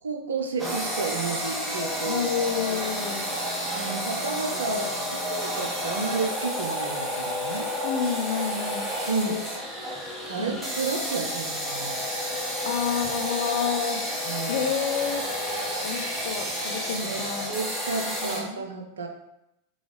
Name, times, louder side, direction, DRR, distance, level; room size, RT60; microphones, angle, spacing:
voice 1, 0.0-2.2 2.6-3.0 3.7-7.7 9.1-9.4 10.3-12.4 14.2-14.6 16.8-19.1, right 4 dB, 70° right, 3 dB, 0.6 m, -32 dB
sound 1, 0.6-18.4, equal, 5° right, 1.3 m, -30 dB
voice 2, 2.1-3.3 7.8-8.9 9.3-9.5 10.4-10.6 12.7-14.0 14.5-15.2 15.8-17.5 18.2-18.7, left 7 dB, 50° left, 7 dB, 0.4 m, -29 dB
3.9 x 3.5 x 3.3 m, 0.85 s
figure-of-eight pair, 90°, 0 cm